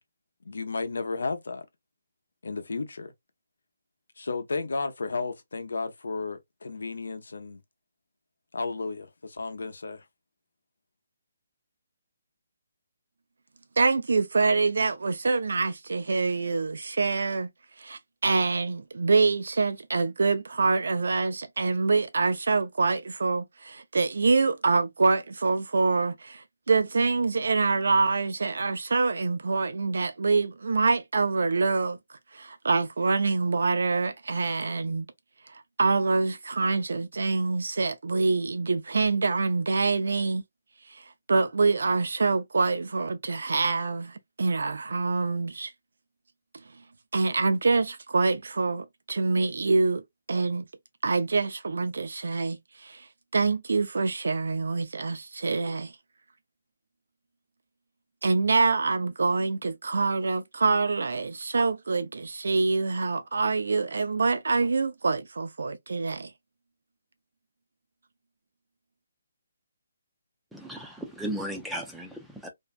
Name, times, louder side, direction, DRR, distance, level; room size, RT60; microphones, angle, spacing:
voice 1, 0.5-1.7 2.4-3.1 4.2-7.6 8.5-10.0, left 3 dB, 85° left, 0.7 m, -33 dB
voice 2, 13.8-17.5 17.8-35.1 35.5-40.4 40.9-45.7 47.1-50.0 50.3-50.6 51.0-53.1 53.3-55.9 58.2-66.3, right 3 dB, 75° right, 0.3 m, -25 dB
voice 3, 70.5-72.5, right 1 dB, ahead, 0.4 m, -35 dB
2.6 x 2.1 x 2.4 m
hypercardioid pair, 170°, 0 cm